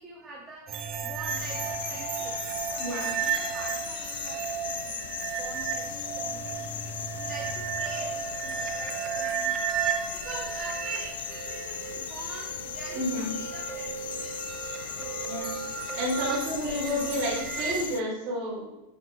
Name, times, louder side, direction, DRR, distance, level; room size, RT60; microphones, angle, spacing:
voice 1, 0.0-2.3 2.7-6.4 7.1-9.6 10.0-14.5 15.0-15.4 15.9-16.0, right 2 dB, 15° right, -4 dB, 1.5 m, -45 dB
sound 1, 0.7-17.9, right 8 dB, 30° right, 0.8 m, -34 dB
sound 2, 1.3-18.0, left 9 dB, 60° left, 0.4 m, -38 dB
voice 2, 2.8-3.1 12.9-13.3 15.3-15.6 15.9-18.8, equal, 45° right, -4 dB, 3.3 m, -31 dB
12.0 x 5.8 x 3.2 m, 1.0 s
figure-of-eight pair, 90°, 0 cm